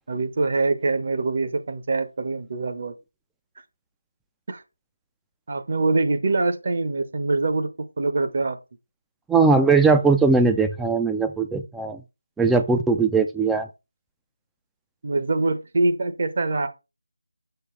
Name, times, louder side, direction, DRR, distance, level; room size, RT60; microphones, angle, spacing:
voice 1, 0.1-2.9 4.5-4.6 5.5-7.7 8.0-8.6 15.0-16.7, right 3 dB, 40° right, 0.9 m, -24 dB
voice 2, 9.3-12.0 12.4-13.7, right 4 dB, 5° right, 0.4 m, -19 dB
7.1 x 6.7 x 3.2 m
figure-of-eight pair, 170°, 0 cm